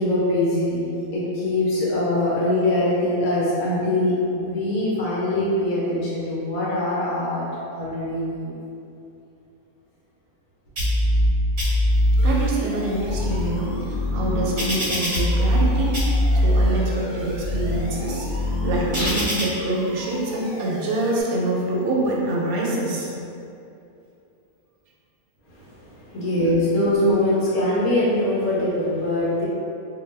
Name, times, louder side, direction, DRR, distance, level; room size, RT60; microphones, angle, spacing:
voice 1, 0.0-7.4 7.7-8.5 25.5-29.4, left 1 dB, 70° left, -8 dB, 1.2 m, -23 dB
sound 1, 10.8-11.3 11.6-12.3 12.9-15.7 15.9-16.7 17.2-19.4, left 1 dB, 50° right, 0.7 m, -22 dB
Siren, 12.2-21.2, equal, 25° left, 0.3 m, -40 dB
voice 2, 12.2-23.1 26.2-26.3, right 2 dB, 75° right, -3 dB, 1.0 m, -26 dB
2.7 x 2.2 x 3.2 m, 2.7 s
omnidirectional pair, 1.6 m